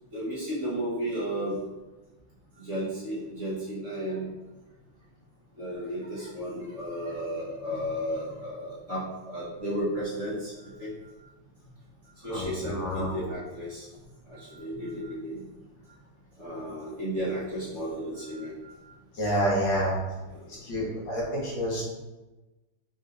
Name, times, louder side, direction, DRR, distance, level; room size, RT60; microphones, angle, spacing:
voice 1, 0.1-1.6 2.6-4.3 5.6-9.0 9.3-10.5 10.8-10.9 12.2-13.8 14.3-15.4 16.4-18.5, equal, 40° right, -10 dB, 1.4 m, -33 dB
voice 2, 12.3-13.1 19.1-20.0 20.5-21.8, equal, 65° left, -5 dB, 1.8 m, -28 dB
5.5 x 3.5 x 2.5 m, 1.1 s
omnidirectional pair, 2.3 m